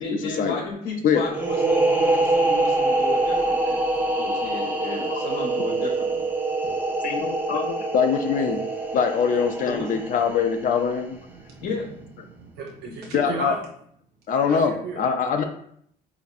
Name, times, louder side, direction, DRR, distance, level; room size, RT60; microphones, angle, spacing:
voice 1, 0.0-3.9 4.2-6.2 9.7-9.8 11.6-11.9, left 3 dB, 75° left, -1 dB, 0.8 m, -33 dB
sound 1, 1.3-10.8, right 2 dB, 10° right, 0.6 m, -24 dB
voice 2, 7.0-8.6 8.9-11.2 13.1-13.5 14.3-15.4, left 6 dB, 55° left, 5 dB, 0.4 m, -23 dB
voice 3, 11.3-11.7 12.3-13.6 14.5-15.0, right 4 dB, 75° right, 0 dB, 0.6 m, -35 dB
4.3 x 2.6 x 2.4 m, 0.66 s
cardioid pair, 110°, 17 cm